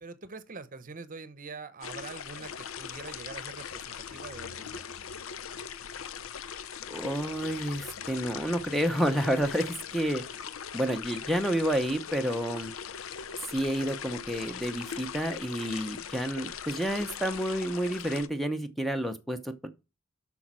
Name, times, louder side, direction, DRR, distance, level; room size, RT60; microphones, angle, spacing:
voice 1, 0.0-4.8, right 4 dB, 40° right, 0.8 m, -44 dB
sound 1, 1.8-18.3, left 7 dB, 75° left, 0.6 m, -40 dB
voice 2, 6.9-10.2 10.7-12.7 13.4-19.7, equal, ahead, 0.7 m, -30 dB
8.3 x 6.0 x 6.1 m
head